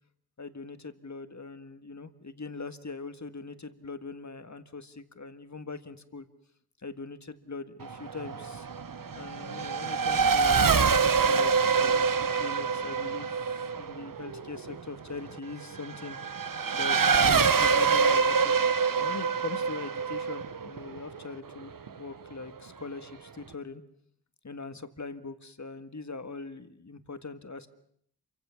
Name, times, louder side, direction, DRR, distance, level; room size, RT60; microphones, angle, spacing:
voice 1, 0.4-6.3 6.8-8.7 9.1-10.7 11.0-11.5 11.8-16.2 16.7-18.6 19.0-23.8 24.4-27.7, left 3 dB, 45° left, 10 dB, 1.7 m, -41 dB
Race car auto racing / Accelerating revving vroom, 7.8-21.9, right 5 dB, 55° right, 1.0 m, -26 dB
27.5 x 24.5 x 7.1 m, 0.66 s
wide cardioid pair, 90°, 39 cm